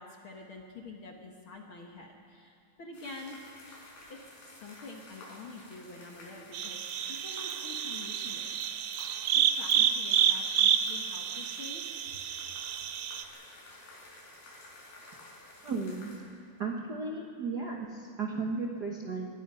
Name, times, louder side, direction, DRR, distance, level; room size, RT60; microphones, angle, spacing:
voice 1, 0.0-3.4 4.1-4.2 4.5-8.5 9.3-11.8, left 3 dB, 50° left, 1 dB, 1.7 m, -47 dB
sound 1, 2.9-16.2, left 2 dB, 90° left, 7.0 m, -52 dB
sound 2, 6.5-13.2, right 9 dB, 85° right, 1.3 m, -29 dB
voice 2, 15.6-16.2 16.6-19.3, right 4 dB, 50° right, 0 dB, 1.2 m, -35 dB
25.5 x 21.5 x 5.6 m, 2.4 s
omnidirectional pair, 4.0 m